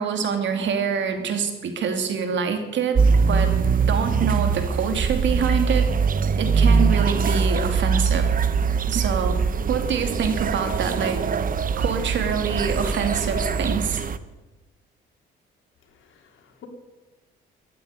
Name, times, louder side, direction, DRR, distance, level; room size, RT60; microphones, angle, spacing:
voice 1, 0.0-5.9 6.4-8.3 8.9-9.4 9.7-11.2 11.8-14.0, right 6 dB, 70° right, 6 dB, 2.7 m, -26 dB
sound 1, 2.9-14.2, right 5 dB, 45° right, 0.9 m, -22 dB
voice 2, 15.9-16.7, left 10 dB, 75° left, 4 dB, 3.2 m, -50 dB
14.0 x 9.8 x 9.8 m, 1.1 s
cardioid pair, 90°, 20 cm